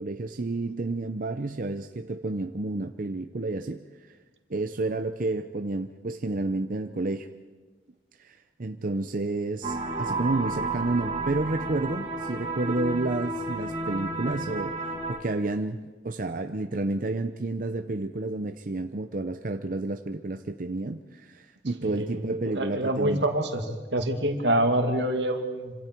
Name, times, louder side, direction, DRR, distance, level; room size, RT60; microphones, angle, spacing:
voice 1, 0.0-4.2 4.5-7.3 8.2-15.8 16.0-23.2, right 2 dB, 50° right, 7 dB, 0.7 m, -30 dB
sound 1, 9.6-15.2, right 2 dB, 35° right, 3.9 m, -32 dB
voice 2, 21.8-23.7 23.9-25.7, right 1 dB, 85° right, 5 dB, 2.3 m, -26 dB
26.0 x 26.0 x 4.6 m, 1.4 s
head